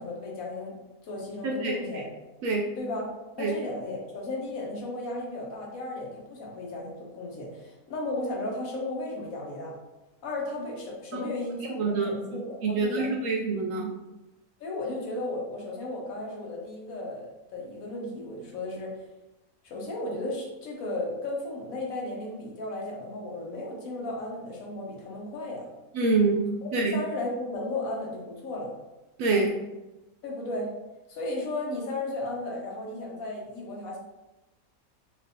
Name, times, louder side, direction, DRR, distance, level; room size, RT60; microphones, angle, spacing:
voice 1, 0.0-2.1 2.8-3.1 3.4-9.7 10.2-13.1 14.6-18.9 19.6-25.7 26.6-28.7 30.2-30.7 31.1-34.0, left 2 dB, 65° left, -1 dB, 1.3 m, -35 dB
voice 2, 11.7-13.9 25.9-27.0 29.2-29.5, right 3 dB, 70° right, 0 dB, 0.9 m, -26 dB
3.4 x 3.1 x 2.6 m, 1.0 s
omnidirectional pair, 1.6 m